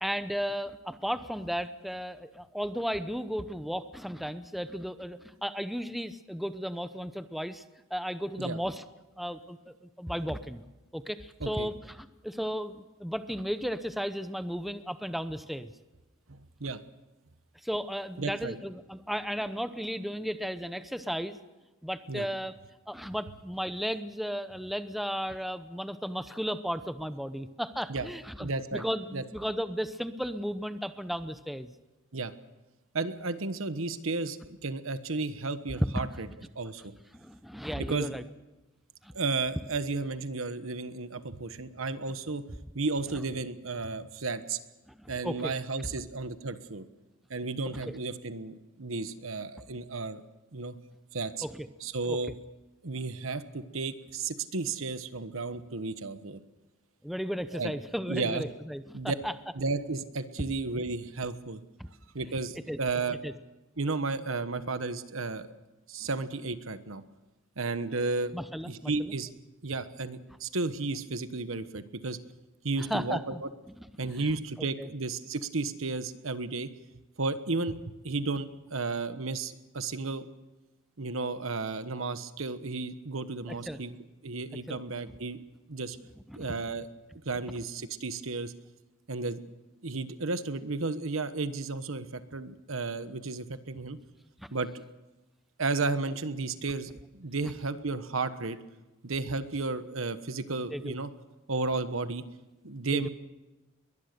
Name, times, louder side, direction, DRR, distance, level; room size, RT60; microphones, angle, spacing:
voice 1, 0.0-7.6 7.9-8.8 9.2-10.6 10.9-15.7 17.6-21.4 21.8-22.5 22.9-31.7 35.8-35.9 37.1-38.2 39.0-39.1 45.0-45.5 47.7-47.9 51.4-51.7 52.1-52.2 57.0-59.3 61.8-61.9 62.7-62.8 63.2-63.3 68.3-69.1 72.8-73.4 74.8-74.9 83.5-83.8 84.7-84.8 86.3-86.5 100.7-100.9 102.9-103.1, equal, ahead, 11 dB, 0.7 m, -34 dB
voice 2, 16.3-16.8 18.2-18.6 22.1-22.3 27.9-28.1 28.4-28.8 29.1-29.2 32.1-32.3 32.9-36.3 36.5-36.9 37.8-38.1 39.1-44.6 45.1-46.9 47.3-50.2 50.5-50.7 51.1-51.4 51.8-52.4 52.8-56.4 57.5-57.7 58.1-58.4 58.9-59.1 59.5-61.6 62.1-63.2 63.8-65.5 65.9-67.0 67.6-68.3 68.7-69.3 69.6-72.2 72.6-73.5 74.0-76.7 77.2-80.3 81.0-84.0 84.2-85.4 85.7-86.0 86.3-86.9 87.2-88.5 89.1-89.4 89.8-94.0 94.5-94.7 95.6-98.6 99.0-101.1 101.5-102.2 102.6-103.1, right 3 dB, 70° right, 11 dB, 1.3 m, -33 dB
22.0 x 20.0 x 6.8 m, 1.1 s
head